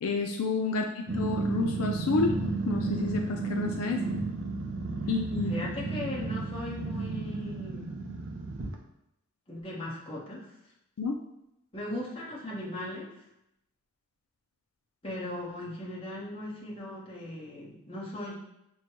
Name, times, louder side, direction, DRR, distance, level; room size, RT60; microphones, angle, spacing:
voice 1, 0.0-2.3 2.6-4.0 5.1-5.5 11.0-11.2, left 3 dB, 75° left, 3 dB, 0.4 m, -29 dB
Growling, 1.1-8.8, right 3 dB, 55° right, 0.5 m, -33 dB
voice 2, 5.5-7.9 9.5-10.4 11.7-13.1 15.0-18.3, left 1 dB, 25° left, -5 dB, 1.0 m, -38 dB
6.2 x 2.2 x 2.9 m, 0.84 s
head